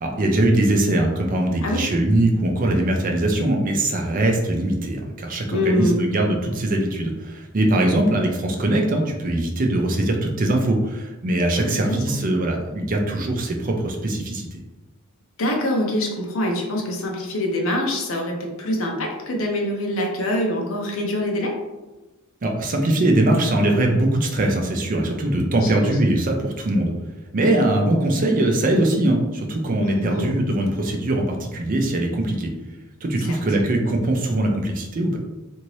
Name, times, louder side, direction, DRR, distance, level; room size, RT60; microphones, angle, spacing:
voice 1, 0.0-14.6 22.4-26.9 27.3-32.5 33.0-35.2, right 1 dB, 40° right, 2 dB, 0.5 m, -21 dB
voice 2, 5.5-6.0 11.6-12.0 15.4-21.5 25.6-26.1 29.8-30.3 33.3-33.4, left 1 dB, 70° left, 1 dB, 0.6 m, -25 dB
2.8 x 2.6 x 3.0 m, 1.1 s
head